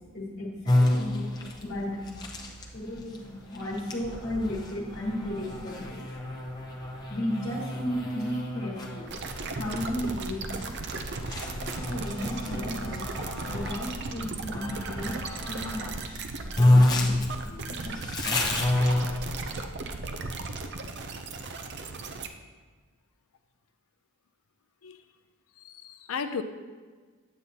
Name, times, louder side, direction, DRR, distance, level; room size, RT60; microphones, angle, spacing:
voice 1, 0.1-2.3 2.7-6.1 6.4-6.8 7.1-9.1 9.5-10.7 11.8-13.0 13.4-18.0, left 1 dB, 45° left, -6 dB, 1.3 m, -35 dB
sound 1, 0.7-13.8 14.5-15.9 16.2-16.3 16.5-19.7, left 1 dB, 20° left, 0.7 m, -29 dB
sound 2, 9.1-22.3, right 3 dB, 50° right, 0.5 m, -36 dB
voice 2, 25.6-26.4, left 6 dB, 75° left, 9 dB, 0.5 m, -35 dB
9.1 x 8.1 x 2.8 m, 1.4 s
head